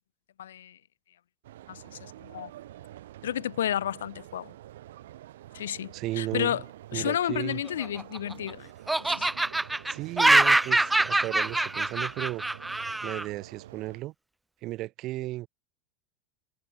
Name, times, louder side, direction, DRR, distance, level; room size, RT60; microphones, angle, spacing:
voice 1, 0.4-0.8 1.7-2.5 3.2-4.5 5.5-6.6 6.9-8.7 9.0-9.3, left 11 dB, 70° left, 0.7 m, -31 dB
sound 1, 1.4-14.0, right 14 dB, 65° right, 3.0 m, -48 dB
voice 2, 5.9-6.6 6.9-7.6 9.9-12.4 13.0-14.1 14.6-15.5, right 17 dB, 45° right, 1.4 m, -34 dB
Laughter, 7.7-8.5 8.9-13.3, right 2 dB, 10° right, 0.6 m, -24 dB
figure-of-eight pair, 85°, 0 cm